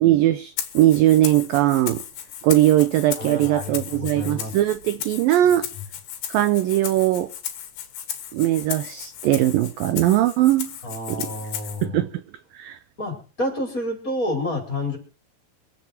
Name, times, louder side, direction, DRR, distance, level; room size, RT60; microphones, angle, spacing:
voice 1, 0.0-2.0 2.4-5.7 6.3-7.3 8.3-10.7 11.1-11.3 11.8-12.2 12.5-12.8, right 14 dB, 75° right, 2.2 m, -20 dB
Rattle (instrument), 0.6-11.8, left 10 dB, 90° left, 4.0 m, -35 dB
voice 2, 3.2-4.6 10.8-12.0 13.0-15.0, left 1 dB, 20° left, 5.2 m, -29 dB
25.5 x 8.6 x 4.5 m
omnidirectional pair, 4.8 m